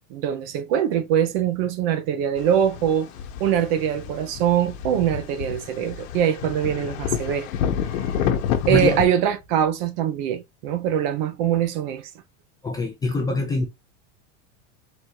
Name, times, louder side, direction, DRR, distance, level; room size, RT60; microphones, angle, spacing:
voice 1, 0.1-3.1 3.4-7.5 8.2-8.3 8.7-12.1, right 9 dB, 45° right, 0.8 m, -23 dB
sound 1, 2.4-9.1, left 8 dB, 70° left, 1.0 m, -28 dB
voice 2, 8.7-9.0 12.6-13.7, left 3 dB, 10° left, 0.5 m, -24 dB
4.1 x 2.6 x 4.6 m
supercardioid pair, 160°, 40 cm